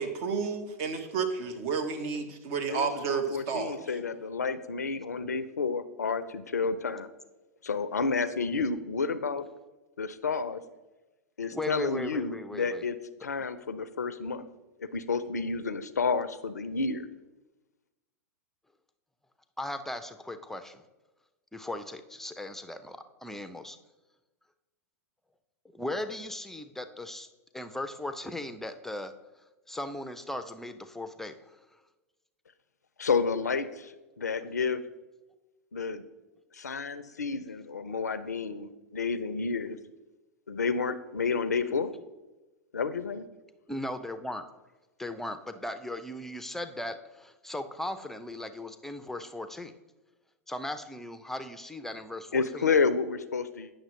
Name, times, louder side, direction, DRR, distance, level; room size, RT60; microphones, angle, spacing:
voice 1, 0.0-3.7, right 5 dB, 55° right, 7 dB, 0.9 m, -31 dB
voice 2, 2.7-7.1 7.6-9.4 10.0-10.6 11.4-14.5 14.8-17.1 33.0-34.8 35.7-36.0 36.5-39.8 40.5-41.9 42.7-43.3 52.3-53.7, left 5 dB, 85° left, 14 dB, 0.5 m, -30 dB
voice 3, 11.5-12.8 19.6-20.8 21.5-23.8 25.7-27.3 27.5-29.1 29.7-31.3 43.7-44.4 45.0-49.7 50.5-52.7, left 1 dB, 5° left, 10 dB, 0.5 m, -37 dB
8.7 x 6.3 x 3.1 m, 1.1 s
hypercardioid pair, 100°, 9 cm